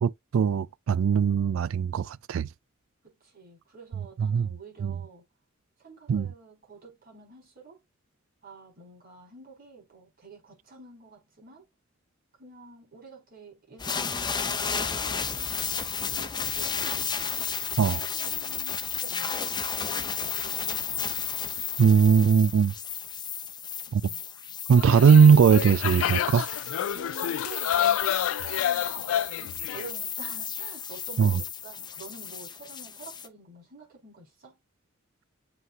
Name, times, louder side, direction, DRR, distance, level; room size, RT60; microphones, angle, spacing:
voice 1, 0.0-2.5 4.2-4.5 4.8-4.9 6.1-6.3 17.8-18.0 21.8-22.7 23.9-24.0 24.7-26.5 31.2-31.4, right 6 dB, 70° right, 0.3 m, -20 dB
voice 2, 3.0-5.2 5.8-7.8 8.4-11.7 12.4-17.3 17.7-21.2 23.9-24.2 26.9-34.6, right 4 dB, 50° right, 4.9 m, -49 dB
sound 1, 13.8-33.3, left 7 dB, 20° left, 0.6 m, -33 dB
sound 2, 24.8-29.9, left 10 dB, 75° left, 0.3 m, -29 dB
7.6 x 5.4 x 2.4 m
head